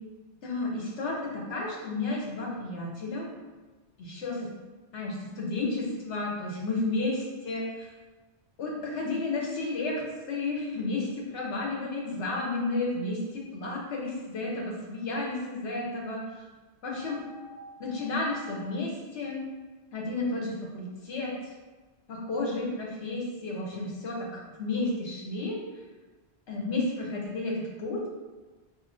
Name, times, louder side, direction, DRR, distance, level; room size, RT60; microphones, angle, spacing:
voice 1, 0.4-3.3 4.0-4.5 4.9-7.9 8.6-16.3 16.8-17.2 17.8-19.4 19.9-21.3 22.1-25.6 26.5-28.1, left 2 dB, 80° left, -1 dB, 1.1 m, -32 dB
sound 1, 17.0-18.6, equal, 60° right, 0.6 m, -48 dB
4.2 x 2.6 x 2.5 m, 1.2 s
omnidirectional pair, 1.1 m